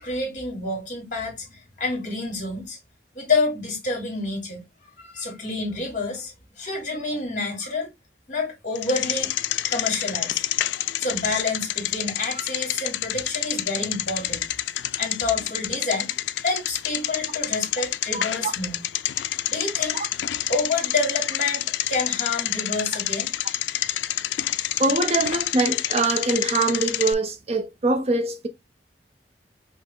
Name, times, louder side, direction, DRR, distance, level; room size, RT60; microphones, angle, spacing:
voice 1, 0.0-2.8 3.1-4.6 5.0-7.9 8.3-9.3 9.7-10.4 11.0-14.4 15.0-18.8 19.5-20.0 20.5-23.3, left 3 dB, 45° left, 1.8 m, -28 dB
Bicycle, 8.7-27.1, left 13 dB, 75° left, 0.3 m, -28 dB
voice 2, 24.8-28.5, right 3 dB, 35° right, 0.5 m, -23 dB
5.3 x 2.0 x 3.6 m
head